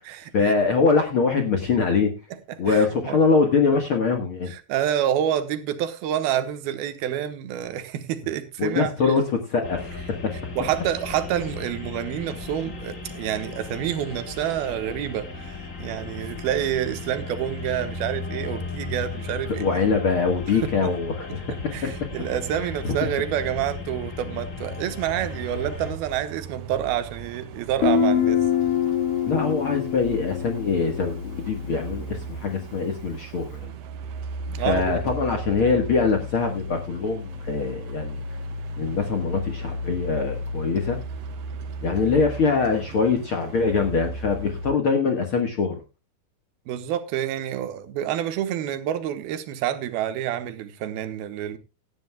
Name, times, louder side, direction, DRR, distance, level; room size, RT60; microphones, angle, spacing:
voice 1, 0.3-2.1 2.6-4.5 8.6-10.0 10.2-10.3 19.6-22.1 22.8-22.9 29.2-33.7 34.6-38.2 38.8-41.0 41.8-45.8, left 4 dB, 55° left, 1.6 m, -23 dB
voice 2, 2.5-3.2 4.5-9.1 10.6-19.9 20.5-20.7 21.7-28.4 34.5-35.0 46.7-51.6, right 11 dB, 90° right, 3.1 m, -28 dB
sound 1, 9.6-25.9, left 4 dB, 30° left, 1.7 m, -36 dB
sound 2, 25.0-44.7, right 1 dB, 65° right, 1.7 m, -35 dB
Guitar, 27.8-31.5, left 8 dB, 75° left, 1.3 m, -24 dB
17.5 x 11.5 x 2.2 m
omnidirectional pair, 4.3 m